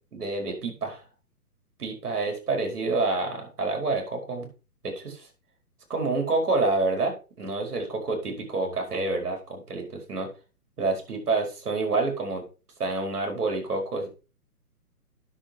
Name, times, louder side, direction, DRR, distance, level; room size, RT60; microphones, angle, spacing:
voice 1, 0.1-1.0 1.8-4.5 4.8-5.3 5.9-10.3 10.8-12.4 12.8-14.1, right 3 dB, 70° right, 3 dB, 5.0 m, -28 dB
10.0 x 7.0 x 4.5 m, 0.33 s
hypercardioid pair, 135°, 46 cm